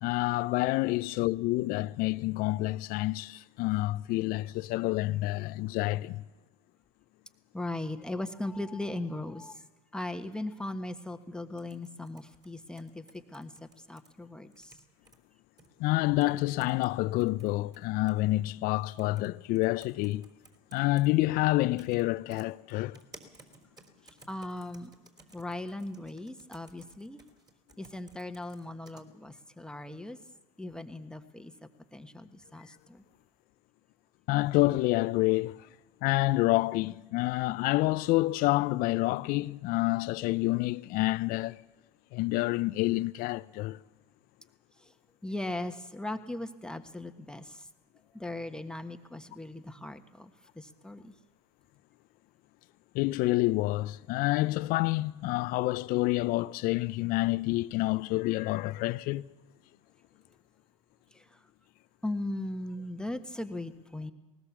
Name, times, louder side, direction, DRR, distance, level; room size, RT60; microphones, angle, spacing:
voice 1, 0.0-6.2 15.8-20.3 20.7-23.0 34.3-35.5 36.0-41.6 42.1-43.8 52.9-59.3, left 19 dB, 55° left, 0.6 m, -28 dB
voice 2, 7.5-9.6 9.9-14.8 24.3-24.9 25.3-27.2 27.8-30.2 30.6-33.0 44.8-44.9 45.2-47.7 48.1-51.1 61.1-61.5 62.0-64.1, left 1 dB, 5° left, 1.3 m, -38 dB
sound 1, 11.6-14.1 14.5-15.2 15.6-15.7 16.2-16.9 17.2-18.2 19.0-19.3 19.6-21.1 21.8-22.0 22.3-29.0, right 2 dB, 25° right, 3.8 m, -56 dB
19.5 x 19.0 x 7.2 m
hypercardioid pair, 85°, 17 cm